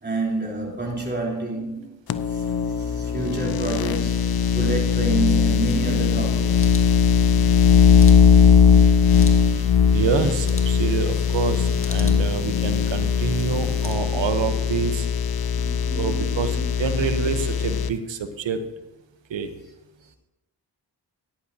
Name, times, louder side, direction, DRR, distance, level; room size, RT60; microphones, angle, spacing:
voice 1, 0.0-2.0 2.2-6.7 13.6-13.7 14.1-14.3 15.6-16.7, right 2 dB, 25° right, 3.5 m, -30 dB
sound 1, 2.1-17.9, left 6 dB, 55° left, 0.7 m, -19 dB
sound 2, 5.5-13.9, left 2 dB, 30° left, 1.8 m, -40 dB
voice 2, 9.9-15.1 15.9-18.6 19.3-19.5, right 6 dB, 80° right, 1.1 m, -27 dB
14.5 x 10.5 x 2.8 m
cardioid pair, 45°, 44 cm